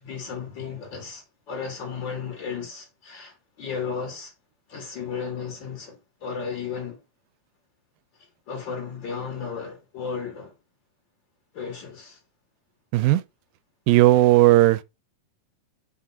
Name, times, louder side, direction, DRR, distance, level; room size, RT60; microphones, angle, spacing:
voice 1, 0.0-4.3 4.7-7.0 8.2-10.5 11.5-12.2, left 6 dB, 40° left, 2.3 m, -34 dB
voice 2, 13.9-14.8, right 17 dB, 90° right, 2.4 m, -16 dB
5.8 x 5.0 x 4.2 m
omnidirectional pair, 4.1 m